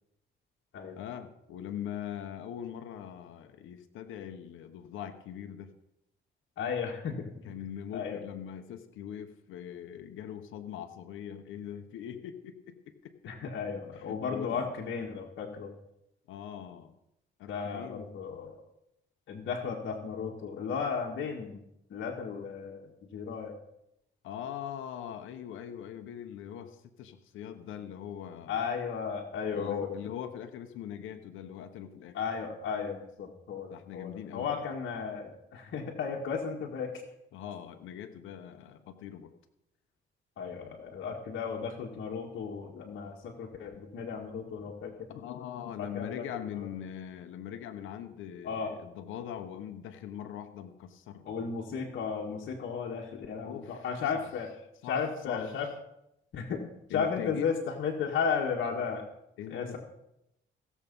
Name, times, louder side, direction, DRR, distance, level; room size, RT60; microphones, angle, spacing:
voice 1, 1.0-5.7 7.4-13.3 14.0-14.7 16.3-16.9 17.4-18.1 24.2-28.6 29.5-32.2 33.7-34.6 37.3-39.3 44.6-44.7 45.1-51.5 53.4-53.9 54.1-54.2 54.8-55.5 56.9-57.5 59.4-59.8, left 9 dB, 85° left, 7 dB, 1.1 m, -42 dB
voice 2, 6.6-7.3 7.9-8.2 13.3-15.7 17.5-18.6 19.3-21.6 21.9-23.5 28.5-30.0 32.1-37.0 40.4-44.9 45.8-46.2 48.4-48.7 51.3-54.5 54.8-55.7 56.3-56.6 56.9-59.0 59.5-59.8, left 6 dB, 70° left, -2 dB, 1.8 m, -34 dB
16.0 x 7.3 x 5.4 m, 0.83 s
cardioid pair, 90°, 20 cm